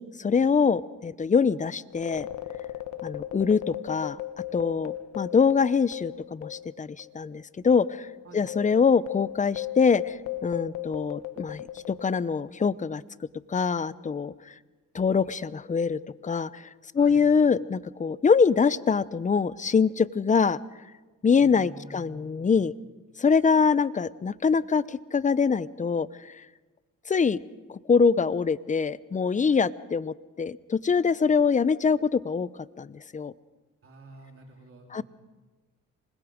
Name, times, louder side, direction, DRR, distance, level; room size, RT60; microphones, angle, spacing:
voice 1, 0.0-2.3 3.0-4.2 4.5-8.1 8.3-13.0 13.5-14.3 14.9-16.6 16.9-20.6 21.2-22.7 23.2-26.3 27.1-27.4 27.7-32.5 32.8-33.3 34.9-35.0, left 5 dB, 25° left, 18 dB, 0.7 m, -24 dB
sound 1, 1.9-6.7 7.0-7.1 7.7-12.5, left 14 dB, 90° left, 1.3 m, -36 dB
voice 2, 17.0-17.3 21.3-22.7 33.8-35.0, right 2 dB, 45° right, 2 dB, 4.0 m, -48 dB
26.5 x 20.5 x 5.1 m, 1.2 s
cardioid pair, 90°, 30 cm